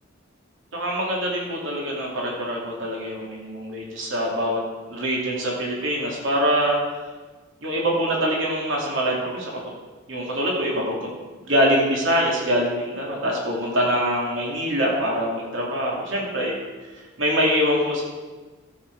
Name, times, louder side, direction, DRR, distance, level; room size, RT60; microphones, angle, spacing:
voice 1, 0.7-4.6 4.9-6.8 7.6-9.5 10.1-11.1 11.4-16.6 16.9-18.0, equal, 75° right, -3 dB, 2.7 m, -24 dB
14.0 x 7.7 x 4.7 m, 1.3 s
head